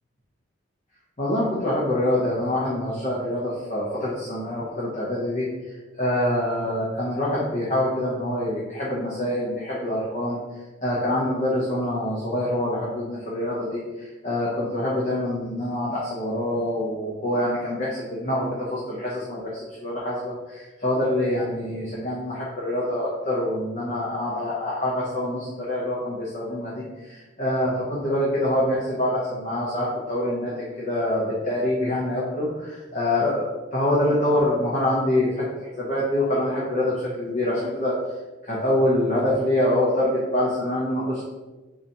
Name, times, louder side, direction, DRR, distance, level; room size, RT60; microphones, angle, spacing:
voice 1, 1.2-5.5 6.0-10.4 10.8-33.4 33.7-38.0 38.4-41.2, left 1 dB, 35° left, -7 dB, 0.8 m, -25 dB
3.9 x 2.8 x 4.3 m, 1.2 s
head